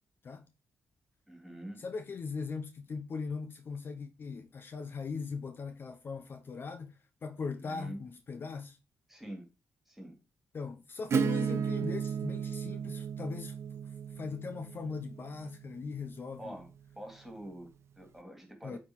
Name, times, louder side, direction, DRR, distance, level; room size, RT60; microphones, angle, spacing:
voice 1, 1.3-1.8 7.6-8.0 9.1-9.4 9.9-10.2 16.4-16.7 16.9-18.8, right 1 dB, ahead, 2.8 m, -45 dB
voice 2, 1.8-8.8 10.5-13.6 14.1-16.6 18.6-18.8, left 5 dB, 50° left, 0.7 m, -40 dB
Acoustic guitar / Strum, 11.1-16.6, right 6 dB, 65° right, 0.9 m, -35 dB
8.7 x 3.7 x 4.7 m
cardioid pair, 95°, 5 cm